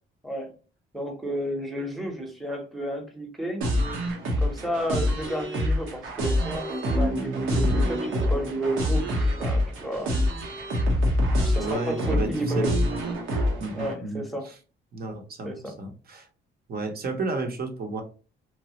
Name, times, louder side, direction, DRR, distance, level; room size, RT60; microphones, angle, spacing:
voice 1, 0.9-3.6 4.4-6.7 7.0-9.0 9.4-10.1 11.4-12.7 13.7-14.5 15.4-15.7, right 1 dB, ahead, 3 dB, 0.8 m, -31 dB
sound 1, 3.6-13.9, equal, 90° right, 1.0 m, -26 dB
voice 2, 11.5-12.7 13.6-14.5 14.9-16.3 16.7-18.0, right 3 dB, 50° right, 4 dB, 0.8 m, -32 dB
3.0 x 2.3 x 2.8 m, 0.35 s
cardioid pair, 90°, 20 cm